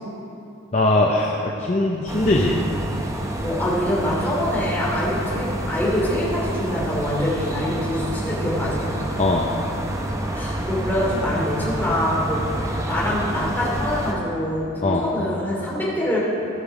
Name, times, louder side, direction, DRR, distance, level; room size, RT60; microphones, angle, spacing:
voice 1, 0.7-2.6 9.2-9.5 14.8-15.0, left 2 dB, 35° left, -2 dB, 0.6 m, -20 dB
sound 1, 2.1-14.1, right 1 dB, 15° right, 0.6 m, -28 dB
voice 2, 3.4-8.9 10.3-16.2, left 1 dB, 10° left, -7 dB, 2.6 m, -25 dB
16.5 x 5.9 x 4.9 m, 2.8 s
head